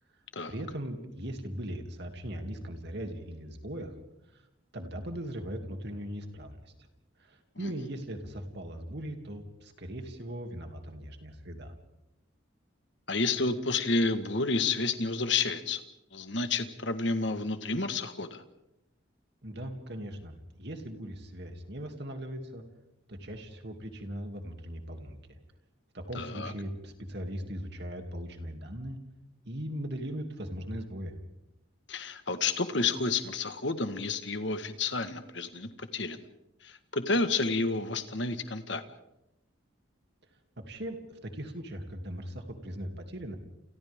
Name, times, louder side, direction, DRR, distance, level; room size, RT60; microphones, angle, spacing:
voice 1, 0.5-3.9 4.3-4.4 4.7-6.7 7.2-11.7 19.4-22.6 23.1-25.4 25.9-29.0 29.4-31.1 40.6-43.4, equal, 55° right, 4 dB, 2.7 m, -39 dB
voice 2, 13.1-15.8 16.1-18.4 26.1-26.5 31.9-36.2 36.6-38.8, left 3 dB, 60° left, 9 dB, 1.6 m, -30 dB
29.5 x 28.5 x 3.7 m, 0.91 s
head